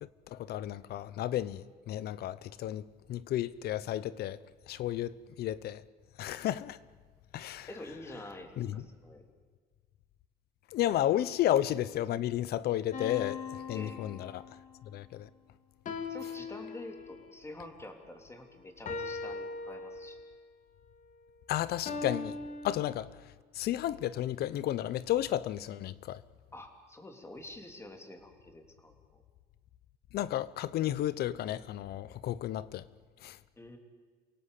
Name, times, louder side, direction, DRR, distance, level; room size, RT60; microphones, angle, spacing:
voice 1, 0.3-4.4 4.7-5.8 6.2-6.8 7.3-7.7 8.6-8.9 10.7-14.5 14.8-15.3 21.5-22.4 22.6-23.1 23.5-26.2 30.1-32.8 33.2-33.4, left 12 dB, 70° left, 0.8 m, -32 dB
voice 2, 7.7-9.2 13.7-14.0 16.1-20.2 26.5-29.2 33.6-33.8, left 1 dB, 15° left, 3.4 m, -47 dB
sound 1, 12.9-14.7 15.8-17.3 18.8-20.4 21.8-22.9, left 4 dB, 50° left, 2.7 m, -40 dB
28.0 x 17.5 x 8.4 m
cardioid pair, 110°, 17 cm